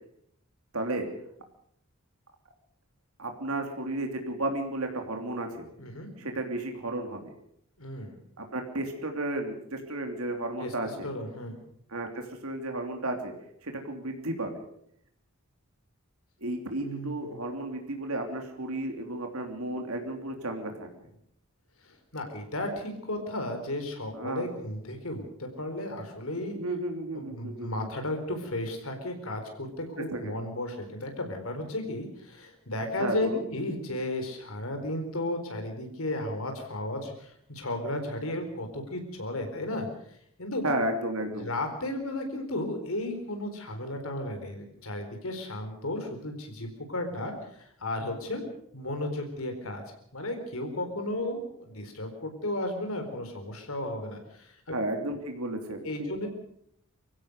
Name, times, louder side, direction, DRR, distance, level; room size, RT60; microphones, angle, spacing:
voice 1, 0.7-1.1 3.2-5.7 6.2-7.3 8.4-11.1 11.9-13.3 13.6-14.6 16.4-20.9 24.1-24.5 26.5-27.9 30.0-30.3 33.0-33.4 40.6-41.5 54.7-56.3, right 1 dB, 80° right, 4 dB, 3.0 m, -33 dB
voice 2, 7.8-8.1 10.6-10.7 11.0-11.6 16.8-17.4 22.1-26.6 27.1-39.9 40.4-40.6 41.4-48.4 48.7-49.8 50.1-54.7 55.8-56.3, left 1 dB, 75° left, 5 dB, 4.2 m, -34 dB
24.5 x 16.0 x 6.6 m, 0.69 s
head